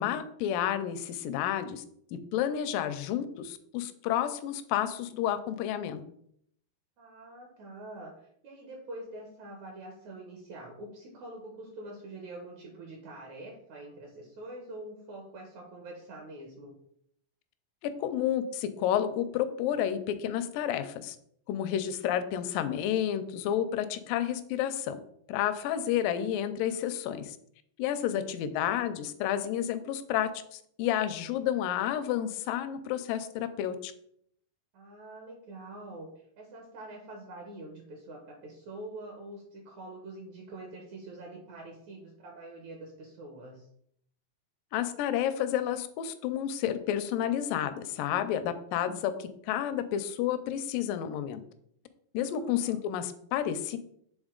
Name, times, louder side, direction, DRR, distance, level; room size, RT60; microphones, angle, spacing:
voice 1, 0.0-1.8 2.1-6.0 17.8-21.2 21.5-25.0 25.3-27.4 27.8-33.9 44.7-51.4 52.1-53.8, left 10 dB, 80° left, 10 dB, 2.0 m, -30 dB
voice 2, 7.0-16.8 28.0-28.7 34.7-43.7 52.4-52.8, right 2 dB, 70° right, 1 dB, 1.9 m, -45 dB
7.9 x 3.8 x 3.7 m, 0.69 s
omnidirectional pair, 4.3 m